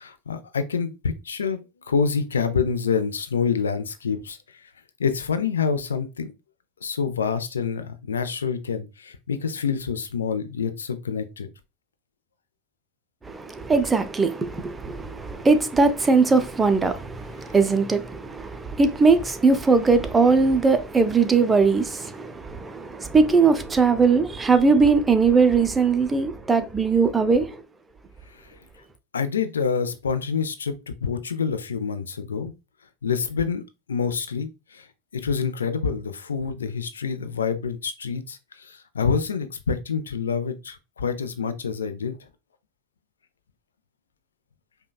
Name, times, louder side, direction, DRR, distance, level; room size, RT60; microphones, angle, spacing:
voice 1, 0.0-1.6 1.9-4.4 5.0-6.3 6.8-11.5 29.1-32.5 33.0-33.6 33.9-34.9 35.2-42.2, left 6 dB, 80° left, 0.4 m, -27 dB
voice 2, 13.3-27.6, right 4 dB, 15° right, 0.5 m, -20 dB
5.1 x 2.2 x 2.3 m
figure-of-eight pair, 85°, 0 cm